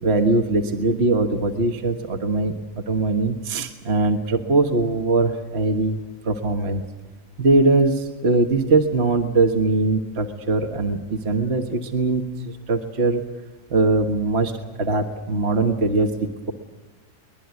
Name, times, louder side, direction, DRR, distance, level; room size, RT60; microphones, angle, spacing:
voice 1, 0.0-2.5 2.9-6.0 6.2-6.8 7.4-13.2 13.7-16.5, right 3 dB, 40° right, 5 dB, 1.6 m, -21 dB
23.5 x 21.0 x 9.4 m, 1.1 s
omnidirectional pair, 1.8 m